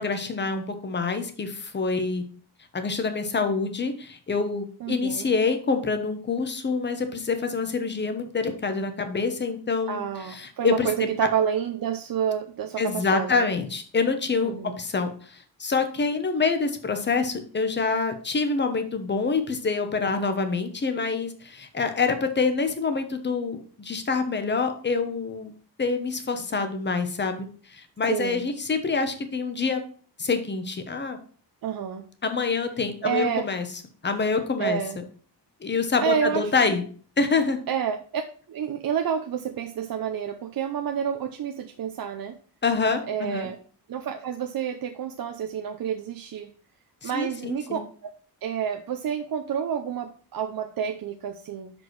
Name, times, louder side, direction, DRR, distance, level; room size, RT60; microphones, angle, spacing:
voice 1, 0.0-2.2 2.7-10.9 11.2-11.3 12.8-25.5 25.8-29.8 30.2-31.2 32.2-33.7 34.0-34.8 35.6-36.8 37.2-37.6 42.6-43.5 47.0-47.8, left 4 dB, 25° left, 8 dB, 0.9 m, -26 dB
voice 2, 4.8-5.3 9.9-13.5 14.4-14.8 28.1-28.4 31.6-32.1 33.0-33.5 34.6-35.0 36.0-36.5 37.7-38.2 38.5-42.4 43.1-43.6 43.9-46.5 47.0-48.2 48.4-51.7, right 8 dB, 55° right, 5 dB, 0.7 m, -29 dB
6.2 x 5.3 x 4.6 m, 0.43 s
wide cardioid pair, 165°, 42 cm